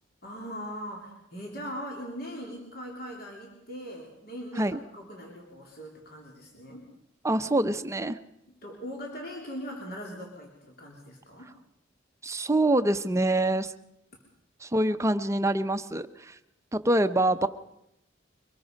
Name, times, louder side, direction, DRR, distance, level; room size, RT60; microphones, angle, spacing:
voice 1, 0.2-6.9 8.5-11.5, equal, 55° left, -1 dB, 3.2 m, -40 dB
voice 2, 7.2-8.2 12.2-13.7 14.6-16.4 16.7-17.5, right 1 dB, 15° right, 10 dB, 0.7 m, -25 dB
24.0 x 20.5 x 5.3 m, 0.84 s
head